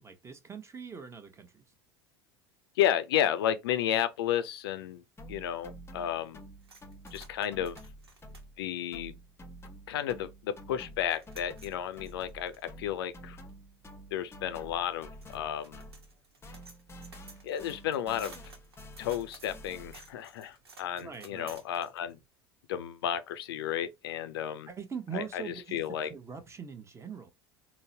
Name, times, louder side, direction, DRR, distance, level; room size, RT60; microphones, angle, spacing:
voice 1, 0.0-1.6 21.0-21.6 24.7-25.8 26.1-27.3, right 6 dB, 20° right, 0.8 m, -42 dB
voice 2, 2.8-5.0 5.3-6.4 7.1-7.8 8.6-9.2 9.9-13.4 14.1-15.8 17.4-18.4 19.0-22.2 22.7-24.7 25.1-26.1, left 10 dB, 70° left, 0.5 m, -32 dB
sound 1, 5.2-8.6 8.9-16.2 16.4-20.2, equal, 20° left, 0.6 m, -49 dB
sound 2, 6.6-9.8 10.2-10.3 10.6-22.2, right 3 dB, 85° right, 0.8 m, -55 dB
3.8 x 2.1 x 2.7 m
figure-of-eight pair, 70°, 13 cm